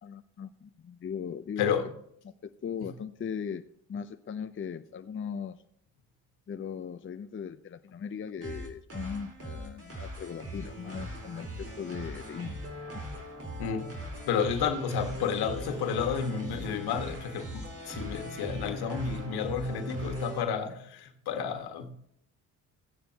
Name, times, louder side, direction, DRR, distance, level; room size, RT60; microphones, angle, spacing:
voice 1, 0.0-1.7 2.4-3.6 3.9-5.6 6.5-12.6 12.9-13.0, left 7 dB, 30° left, 0.7 m, -38 dB
voice 2, 1.6-1.9 13.6-14.0 14.2-21.9, left 6 dB, 75° left, 1.6 m, -31 dB
sound 1, 8.4-20.4, equal, 35° right, 4.1 m, -40 dB
15.0 x 9.3 x 2.9 m
supercardioid pair, 70°, 39 cm